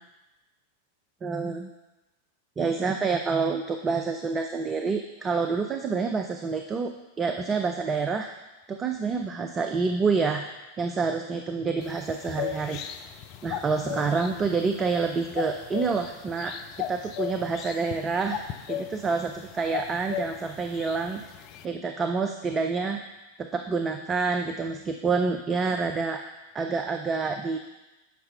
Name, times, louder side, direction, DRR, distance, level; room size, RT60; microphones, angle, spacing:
voice 1, 1.2-1.7 2.6-8.3 8.7-12.8 13.4-16.6 16.9-18.4 18.7-21.2 21.6-23.0 23.4-27.6, right 4 dB, 20° right, 6 dB, 0.6 m, -28 dB
sound 1, 11.8-21.7, left 10 dB, 40° left, 0.6 m, -37 dB
9.3 x 5.8 x 5.6 m, 1.0 s
figure-of-eight pair, 90°, 0 cm